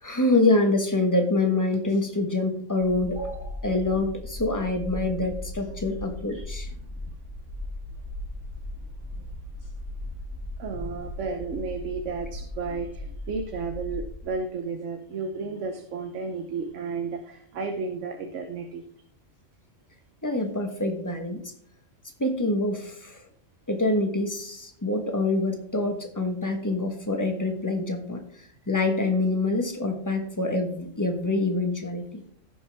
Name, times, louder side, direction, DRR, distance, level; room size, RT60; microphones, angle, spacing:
voice 1, 0.0-6.7 20.2-21.4 22.2-23.2 23.7-28.2 28.7-32.1, left 2 dB, 15° left, 4 dB, 1.2 m, -26 dB
sound 1, 2.8-14.2, left 1 dB, 10° right, 2.0 m, -37 dB
voice 2, 6.3-6.7 10.6-18.8, right 4 dB, 70° right, 6 dB, 1.2 m, -33 dB
16.0 x 5.6 x 3.5 m, 0.62 s
omnidirectional pair, 1.4 m